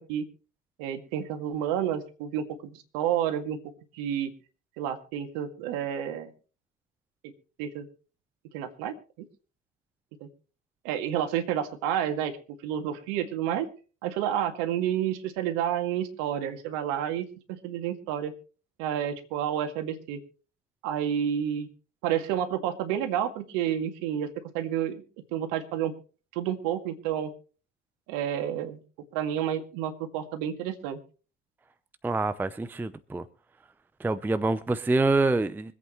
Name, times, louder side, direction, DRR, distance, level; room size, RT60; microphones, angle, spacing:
voice 1, 0.8-3.6 3.9-4.3 4.8-6.3 7.2-7.3 7.6-7.9 8.5-9.3 10.2-10.3 10.8-12.4 12.6-13.7 14.0-18.3 18.8-20.2 20.8-21.7 22.0-24.3 24.5-25.0 25.3-25.9 26.3-27.3 28.1-28.8 29.1-31.0, right 10 dB, 55° right, 2.1 m, -30 dB
voice 2, 32.0-33.2 34.0-35.7, right 2 dB, 5° right, 0.6 m, -26 dB
25.0 x 8.4 x 3.1 m
figure-of-eight pair, 75°, 37 cm